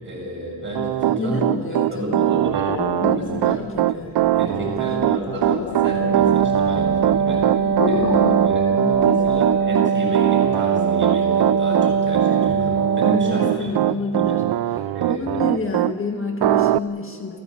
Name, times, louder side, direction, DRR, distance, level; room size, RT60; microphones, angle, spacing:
voice 1, 0.0-1.4 1.7-2.7 3.2-4.1 4.3-7.5 7.8-14.4 14.9-15.4, equal, 30° right, -2 dB, 7.5 m, -31 dB
Piano, 0.7-15.9 16.4-16.8, right 13 dB, 85° right, 0.6 m, -21 dB
voice 2, 1.1-2.4 3.0-5.0 8.0-9.4 13.2-17.4, left 2 dB, 35° left, 3 dB, 1.6 m, -30 dB
sound 1, 1.9-9.7, left 6 dB, 65° left, 1.4 m, -32 dB
Wind instrument woodwind instrument, 5.7-13.7, right 6 dB, 60° right, 1.0 m, -21 dB
28.0 x 16.0 x 8.4 m, 2.5 s
wide cardioid pair, 165°, 38 cm